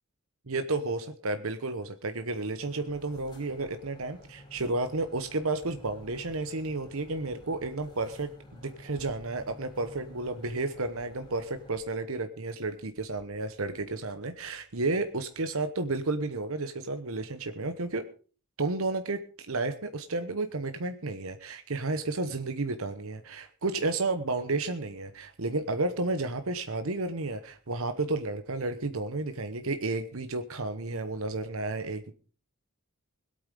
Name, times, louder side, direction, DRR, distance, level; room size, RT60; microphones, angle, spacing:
voice 1, 0.5-18.0 18.6-32.1, right 3 dB, 70° right, 9 dB, 1.1 m, -32 dB
sound 1, 2.6-11.8, left 1 dB, 20° left, 5.4 m, -51 dB
21.0 x 8.8 x 5.3 m, 0.40 s
head